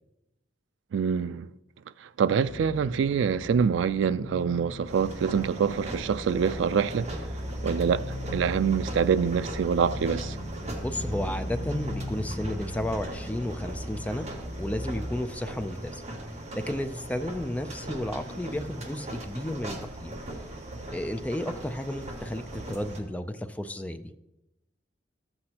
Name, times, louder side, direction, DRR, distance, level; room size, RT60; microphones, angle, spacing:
voice 1, 0.9-1.5 2.0-7.2 7.6-10.4, right 6 dB, 80° right, 0.3 m, -25 dB
sound 1, 2.5-15.1, equal, 35° left, 1.4 m, -37 dB
sound 2, 4.9-23.0, right 1 dB, 40° right, 1.5 m, -40 dB
voice 2, 10.7-14.3 14.6-16.0 16.5-20.1 20.9-24.1, left 1 dB, 10° left, 0.4 m, -33 dB
14.0 x 7.9 x 2.9 m
head